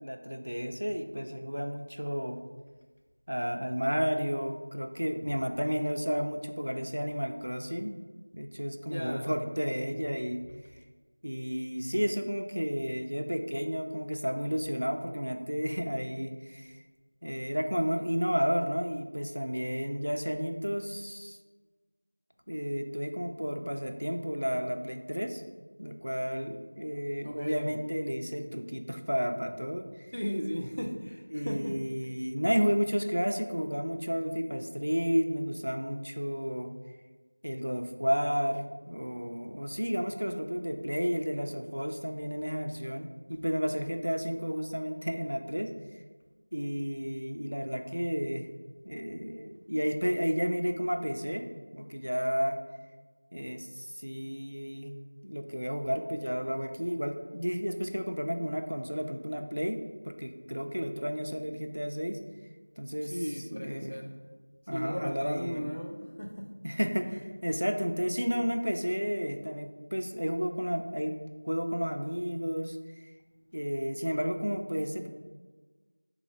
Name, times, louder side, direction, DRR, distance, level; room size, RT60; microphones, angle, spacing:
voice 1, 0.0-2.4 3.3-10.4 11.2-16.8 17.2-21.4 22.5-25.4 25.8-30.1 31.3-36.7 37.4-45.7 46.5-48.5 48.8-51.4 51.7-52.6 53.3-54.9 55.2-62.2 62.8-63.2 63.5-64.0 64.7-65.7 66.6-71.2 71.4-72.8 73.5-75.1, equal, 80° right, 5 dB, 0.4 m, -32 dB
voice 2, 8.9-9.3 27.2-27.7 30.1-31.9 63.1-64.2 64.7-66.5, equal, 40° left, 4 dB, 0.4 m, -36 dB
3.8 x 2.3 x 4.3 m, 1.4 s
figure-of-eight pair, 180°, 0 cm